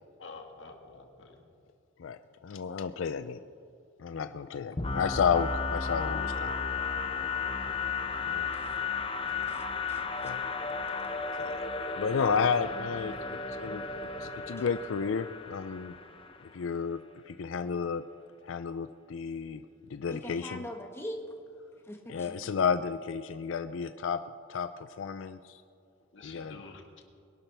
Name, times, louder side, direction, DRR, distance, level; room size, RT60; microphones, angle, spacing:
voice 1, 0.2-1.4 10.3-10.5 26.1-26.8, left 4 dB, 70° left, 3 dB, 1.7 m, -48 dB
voice 2, 2.0-3.4 4.0-6.5 8.3-8.4 10.2-10.4 11.4-11.7 12.0-13.9 14.2-15.9 16.5-18.1 18.4-19.6 19.9-20.7 22.1-25.6 26.2-26.6, left 6 dB, 85° left, 11 dB, 0.4 m, -32 dB
sound 1, 4.8-16.5, left 4 dB, 30° left, 0.7 m, -34 dB
voice 3, 9.5-10.3 20.1-21.2 21.8-22.3, left 1 dB, 15° left, 2 dB, 1.3 m, -42 dB
22.0 x 12.0 x 3.4 m, 2.4 s
head